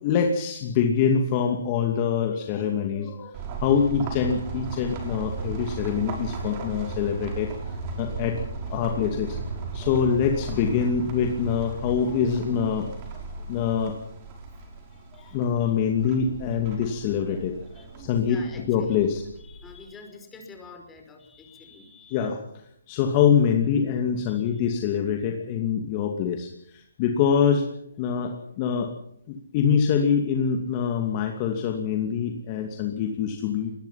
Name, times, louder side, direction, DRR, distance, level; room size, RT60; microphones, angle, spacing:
voice 1, 0.0-8.4 8.7-9.4 9.7-13.2 13.5-13.9 15.2-17.5 18.0-19.2 22.1-22.4 22.9-27.7 28.0-28.9 29.3-33.7, left 7 dB, 30° left, 3 dB, 2.5 m, -25 dB
sound 1, 3.3-19.7, right 4 dB, 30° right, 6.2 m, -36 dB
voice 2, 17.7-19.1 19.4-22.3 24.3-24.6, left 4 dB, 10° left, 4 dB, 5.3 m, -47 dB
24.5 x 20.5 x 5.9 m, 0.71 s
hypercardioid pair, 145°, 0 cm